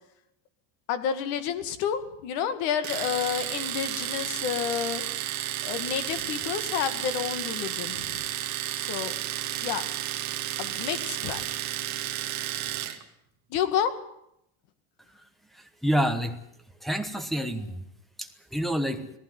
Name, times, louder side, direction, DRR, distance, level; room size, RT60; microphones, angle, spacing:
voice 1, 0.9-5.0 5.6-8.3 8.7-9.1 9.6-9.9 10.6-11.4 13.5-13.9, left 8 dB, 65° left, 11 dB, 2.1 m, -30 dB
Domestic sounds home sounds, 2.8-13.0, right 13 dB, 40° right, 2.1 m, -32 dB
voice 2, 15.5-16.4 16.8-17.8 18.2-19.1, equal, ahead, 10 dB, 1.2 m, -28 dB
19.0 x 15.0 x 9.5 m, 0.78 s
cardioid pair, 175°, 43 cm